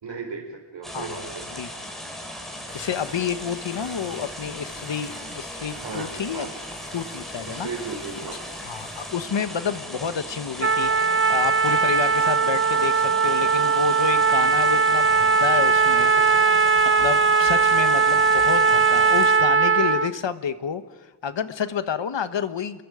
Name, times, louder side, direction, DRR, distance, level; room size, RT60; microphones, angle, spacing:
voice 1, 0.0-1.7 5.8-6.5 7.5-8.4 16.0-16.6, right 4 dB, 75° right, 4 dB, 4.3 m, -36 dB
sound 1, 0.8-19.4, equal, ahead, 4.2 m, -38 dB
voice 2, 2.7-6.5 6.9-7.7 8.6-16.1 17.0-22.8, left 7 dB, 85° left, 11 dB, 1.4 m, -29 dB
sound 2, 2.7-9.2, left 1 dB, 25° left, 4.4 m, -46 dB
Trumpet, 10.6-20.1, right 5 dB, 30° right, 0.6 m, -19 dB
29.0 x 22.5 x 5.1 m, 1.3 s
wide cardioid pair, 145°, 43 cm